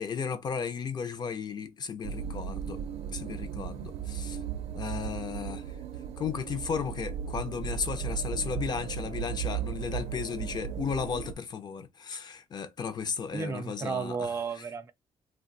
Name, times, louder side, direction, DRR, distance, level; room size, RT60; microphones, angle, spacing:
voice 1, 0.0-2.8 3.1-4.4 4.7-5.6 6.2-14.3, left 6 dB, 45° left, 0.6 m, -34 dB
sound 1, 2.0-11.3, right 9 dB, 85° right, 0.5 m, -36 dB
voice 2, 13.3-14.9, right 5 dB, 25° right, 0.4 m, -33 dB
2.5 x 2.2 x 3.8 m
cardioid pair, 120°, 10 cm